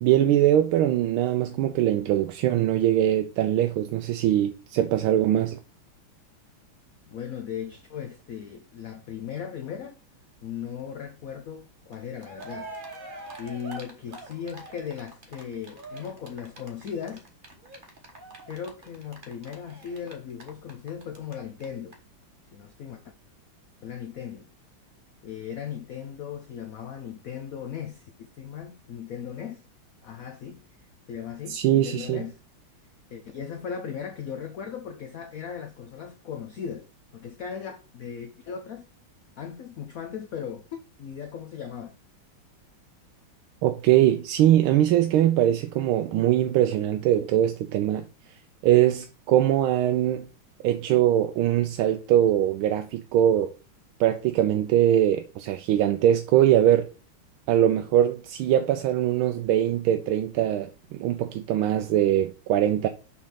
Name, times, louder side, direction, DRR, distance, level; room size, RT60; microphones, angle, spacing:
voice 1, 0.0-5.6 31.5-32.2 43.6-48.0 48.6-50.3 50.6-53.5 54.0-56.9 57.5-60.7 61.0-62.9, right 12 dB, 80° right, 1.4 m, -22 dB
voice 2, 7.1-10.0 10.4-12.7 13.4-17.2 18.5-22.0 22.5-23.0 23.8-24.5 25.2-29.6 30.0-30.6 31.1-32.4 33.1-36.9 37.1-38.9 39.4-42.0, left 8 dB, 75° left, 0.7 m, -37 dB
Cheering, 11.9-12.0 12.2-21.3 21.6-21.7 21.9-22.0, right 2 dB, 35° right, 0.9 m, -43 dB
6.3 x 3.6 x 5.7 m
omnidirectional pair, 2.3 m